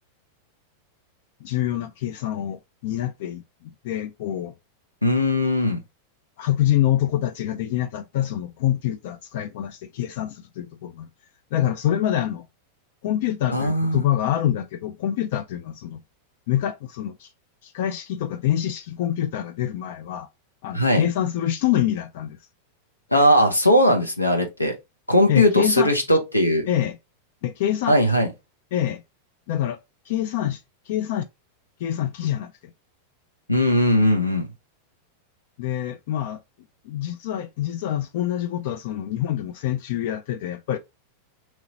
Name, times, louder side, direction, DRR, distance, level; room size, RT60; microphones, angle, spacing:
voice 1, 1.4-4.5 6.4-11.1 11.5-12.5 13.0-16.0 16.5-17.3 17.6-20.3 20.6-22.4 25.3-25.9 26.7-27.0 27.4-28.0 28.7-29.0 29.5-29.8 30.1-30.6 30.9-31.2 31.8-32.5 35.6-36.4 36.8-40.8, left 12 dB, 50° left, 0.3 m, -26 dB
voice 2, 5.0-5.8 13.5-14.0 20.7-21.0 23.1-24.7 25.1-26.7 27.9-28.3 33.5-34.5, left 1 dB, 85° left, 0.9 m, -19 dB
3.0 x 2.9 x 3.8 m
figure-of-eight pair, 90°, 0 cm